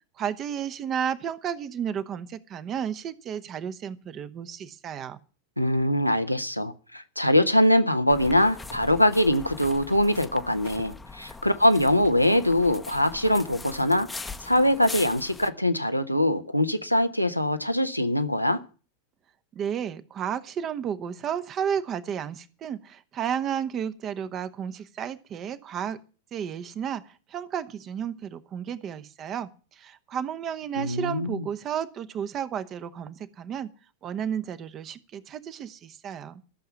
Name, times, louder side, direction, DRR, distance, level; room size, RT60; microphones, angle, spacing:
voice 1, 0.2-5.2 19.5-26.0 26.3-33.7 34.0-36.4, right 8 dB, 30° right, 1.1 m, -32 dB
voice 2, 5.6-14.1 14.4-18.6 30.8-31.4, left 1 dB, 90° left, 1.1 m, -23 dB
sound 1, 8.1-15.5, left 3 dB, 10° left, 1.0 m, -41 dB
14.0 x 7.0 x 9.9 m
figure-of-eight pair, 90°, 0 cm